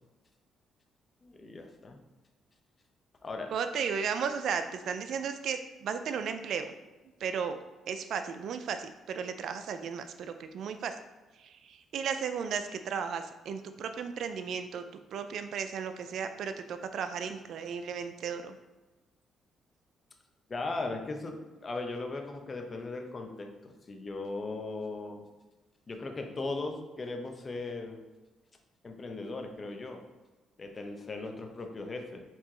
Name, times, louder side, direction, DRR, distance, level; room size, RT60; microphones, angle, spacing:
voice 1, 1.2-2.0 3.2-3.5 20.5-25.2 25.9-28.0 28.8-30.0 30.6-32.2, left 3 dB, 35° left, 3 dB, 0.7 m, -38 dB
voice 2, 3.5-6.7 7.2-7.6 7.9-10.9 11.4-18.5, right 6 dB, 70° right, 8 dB, 0.3 m, -35 dB
4.7 x 2.8 x 3.7 m, 1.1 s
cardioid pair, 90°, 0 cm